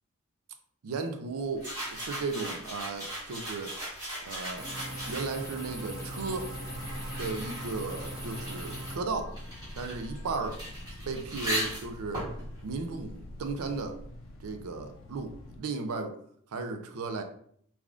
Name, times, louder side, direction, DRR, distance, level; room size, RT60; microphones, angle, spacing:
voice 1, 0.8-3.7 4.2-4.7 5.0-6.5 7.2-9.4 9.7-10.6 11.1-12.2 12.6-14.0 14.4-16.2 16.5-17.2, right 4 dB, 80° right, 6 dB, 0.4 m, -35 dB
sound 1, 1.6-5.6 6.3-13.8, equal, 15° right, 1.3 m, -38 dB
sound 2, 4.6-9.0, right 1 dB, 15° left, 1.0 m, -39 dB
sound 3, 4.7-15.6, left 1 dB, 65° left, 0.6 m, -48 dB
3.4 x 2.3 x 2.4 m, 0.62 s
head